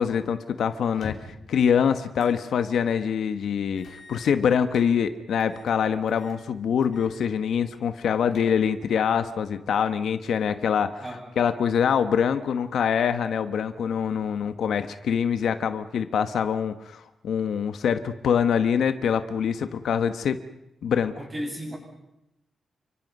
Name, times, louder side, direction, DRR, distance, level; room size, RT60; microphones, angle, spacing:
voice 1, 0.0-11.0 11.4-20.4 20.8-21.1, left 7 dB, 65° left, 10 dB, 1.2 m, -24 dB
sound 1, 0.9-1.5 2.2-2.4 2.8-2.9 3.8-4.9 5.4-5.8 6.1-6.4 6.8-7.1 7.5-7.6 8.0-8.8, left 4 dB, 50° left, 4.4 m, -45 dB
voice 2, 21.2-21.8, equal, 15° right, 1 dB, 7.3 m, -34 dB
29.5 x 25.0 x 5.4 m, 0.89 s
wide cardioid pair, 180°, 0 cm